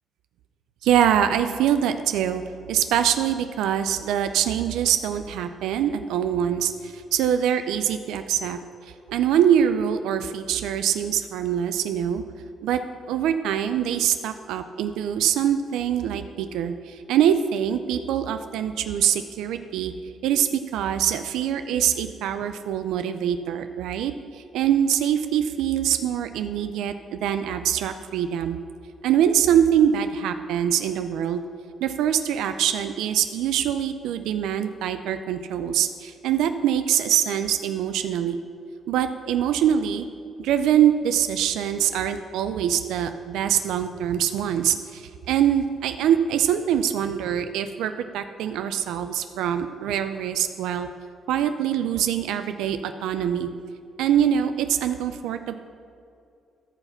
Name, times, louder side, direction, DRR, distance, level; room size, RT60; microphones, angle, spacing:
voice 1, 0.8-2.4 2.7-12.2 12.6-12.8 13.1-19.9 20.2-28.6 29.0-31.4 31.8-38.4 38.9-40.1 40.4-50.9 51.3-53.5 54.0-55.6, right 9 dB, 90° right, 9 dB, 0.4 m, -24 dB
13.5 x 5.8 x 5.7 m, 2.5 s
cardioid pair, 90°, 0 cm